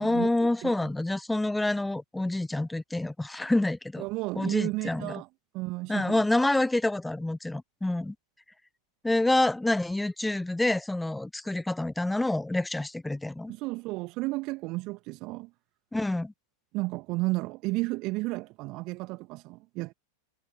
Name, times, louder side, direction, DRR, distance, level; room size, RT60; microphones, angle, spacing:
voice 1, 0.0-4.0 4.4-5.2 5.9-8.1 9.0-13.5 15.9-16.3, left 2 dB, 5° left, 0.6 m, -27 dB
voice 2, 4.0-5.3 5.5-6.3 13.5-15.5 16.7-19.9, right 22 dB, 40° right, 1.7 m, -33 dB
figure-of-eight pair, 90°, 0 cm